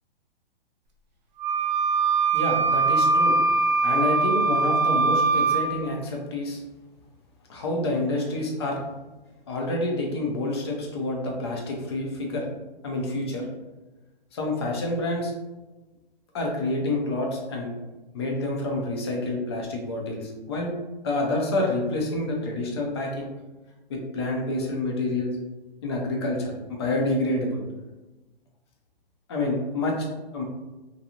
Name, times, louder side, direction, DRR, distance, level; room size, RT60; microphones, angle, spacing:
Wind instrument woodwind instrument, 1.4-5.7, right 4 dB, 45° right, 0.5 m, -22 dB
voice 1, 2.3-3.4 3.8-6.6 7.5-8.8 9.5-12.4 12.8-13.5 14.3-15.3 16.3-17.7 18.1-20.7 21.0-23.3 23.9-25.3 25.8-27.6 29.3-30.0 30.3-30.4, left 2 dB, 30° left, 0 dB, 0.4 m, -28 dB
2.5 x 2.2 x 2.8 m, 1.1 s
hypercardioid pair, 155°, 30 cm